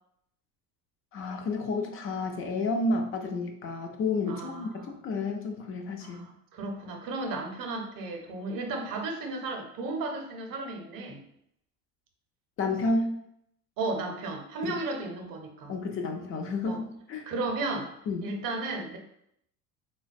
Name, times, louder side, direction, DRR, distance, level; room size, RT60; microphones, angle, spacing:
voice 1, 1.1-6.2 12.6-13.1 14.6-14.7 15.7-17.3 18.1-18.3, left 3 dB, 30° left, 3 dB, 0.5 m, -31 dB
voice 2, 4.3-4.9 6.0-11.2 13.8-15.7 16.7-16.8 17.3-17.9 18.2-19.0, right 3 dB, 45° right, 3 dB, 0.8 m, -34 dB
3.7 x 2.2 x 2.5 m, 0.74 s
figure-of-eight pair, 65°, 47 cm